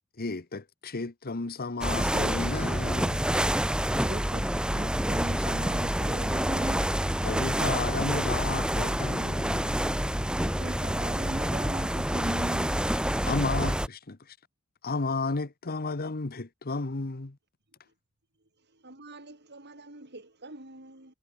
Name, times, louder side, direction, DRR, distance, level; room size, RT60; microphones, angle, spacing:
voice 1, 0.2-3.2 7.2-9.8 13.3-14.4 14.8-17.4, left 3 dB, 45° left, 1.1 m, -33 dB
sound 1, 1.8-13.9, equal, 5° right, 1.8 m, -28 dB
voice 2, 4.0-4.4 4.7-6.9 10.4-13.0, right 1 dB, 25° right, 2.7 m, -38 dB
voice 3, 18.6-21.1, right 2 dB, 50° right, 7.3 m, -48 dB
head